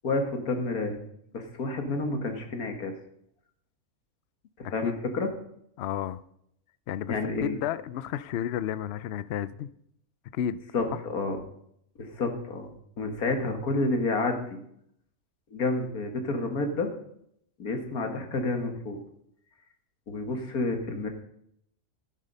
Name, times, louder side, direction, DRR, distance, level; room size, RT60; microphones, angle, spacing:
voice 1, 0.0-1.0 1.3-2.9 4.6-5.3 7.1-7.6 10.7-11.4 12.0-12.7 13.0-14.7 15.5-16.9 17.6-19.0 20.1-21.1, left 2 dB, 90° left, 2.2 m, -29 dB
voice 2, 4.6-5.0 5.8-6.2 6.9-9.7 10.3-10.6, left 10 dB, 65° left, 0.7 m, -32 dB
16.0 x 7.5 x 5.4 m
omnidirectional pair, 1.5 m